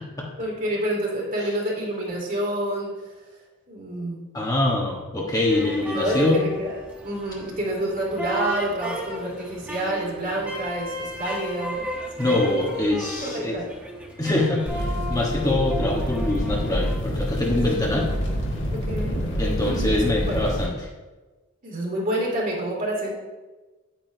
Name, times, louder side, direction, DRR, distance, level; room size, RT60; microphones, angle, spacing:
voice 1, 0.4-3.1 3.7-4.2 5.9-6.7 7.0-11.9 12.2-12.7 13.2-13.7 17.5-17.8 18.7-19.3 19.6-19.8 20.2-20.4 21.6-23.1, right 1 dB, 45° right, -4 dB, 2.7 m, -28 dB
voice 2, 4.3-6.4 12.2-13.6 14.2-18.1 19.4-20.7, left 2 dB, 20° left, -2 dB, 1.2 m, -24 dB
sound 1, 5.5-17.0, equal, 5° right, 1.2 m, -34 dB
sound 2, 14.7-20.7, equal, 60° left, 2.0 m, -27 dB
9.7 x 9.0 x 2.8 m, 1.2 s
head